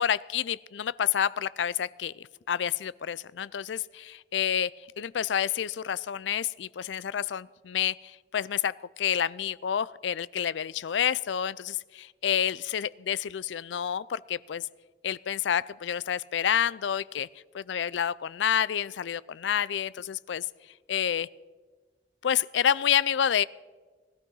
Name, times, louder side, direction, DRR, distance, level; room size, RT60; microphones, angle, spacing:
voice 1, 0.0-14.7 15.0-17.3 17.5-20.5 20.9-21.3 22.2-23.4, left 9 dB, 85° left, 20 dB, 0.4 m, -29 dB
19.5 x 13.0 x 5.5 m, 1.4 s
head